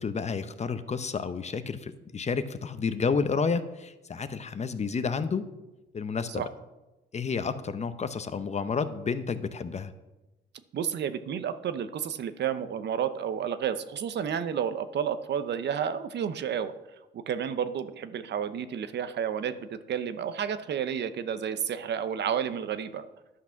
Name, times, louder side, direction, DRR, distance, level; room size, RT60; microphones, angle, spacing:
voice 1, 0.0-5.5 5.9-6.4 7.1-9.9, left 5 dB, 35° left, 11 dB, 0.7 m, -30 dB
voice 2, 10.7-16.7 17.1-23.1, right 8 dB, 60° right, 11 dB, 0.8 m, -31 dB
11.0 x 6.0 x 5.8 m, 1.0 s
cardioid pair, 90°, 20 cm